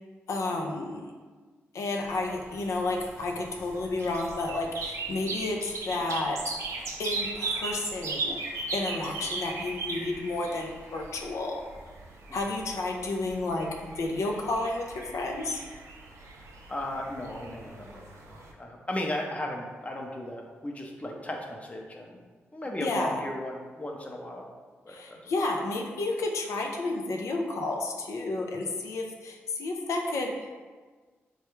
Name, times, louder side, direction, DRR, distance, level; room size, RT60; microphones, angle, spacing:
voice 1, 0.3-1.1 1.7-6.4 7.0-8.4 8.7-11.6 12.3-15.6 22.8-23.2 24.9-30.6, left 2 dB, 75° left, 2 dB, 0.4 m, -31 dB
sound 1, 2.0-18.5, right 3 dB, 75° right, 0.4 m, -38 dB
voice 2, 16.7-22.2 22.5-24.5 24.9-25.0, left 1 dB, 25° left, 0 dB, 0.6 m, -36 dB
3.2 x 2.3 x 3.0 m, 1.4 s
supercardioid pair, 45°, 5 cm